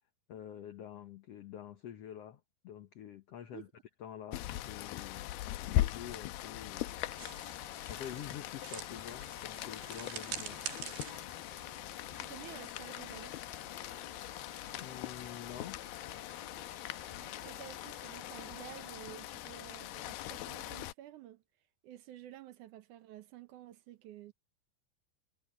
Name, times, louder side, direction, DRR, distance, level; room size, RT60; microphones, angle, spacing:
voice 1, 0.3-3.7 4.0-5.4 5.6-6.9 7.9-10.6 14.8-15.8, left 10 dB, 70° left, 1.5 m, -47 dB
Rain, 4.3-20.9, left 14 dB, 85° left, 2.7 m, -40 dB
sound 1, 6.8-18.9, left 6 dB, 40° left, 2.0 m, -53 dB
sound 2, 7.2-12.5, right 10 dB, 90° right, 3.9 m, -46 dB
voice 2, 12.2-13.4 17.1-21.4 21.8-24.3, right 12 dB, 70° right, 2.2 m, -51 dB
omnidirectional pair, 4.3 m